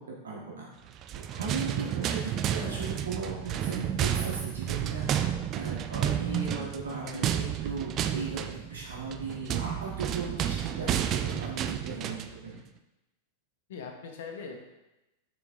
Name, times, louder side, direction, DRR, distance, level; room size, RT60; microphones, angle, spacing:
voice 1, 0.2-0.7 1.3-5.1 5.5-12.6, right 4 dB, 65° right, -4 dB, 1.5 m, -37 dB
sound 1, 1.0-12.4, right 10 dB, 35° right, 0.4 m, -31 dB
voice 2, 7.0-7.3 13.7-14.6, left 5 dB, 55° left, 3 dB, 1.0 m, -41 dB
7.3 x 5.9 x 2.7 m, 0.98 s
figure-of-eight pair, 90°, 0 cm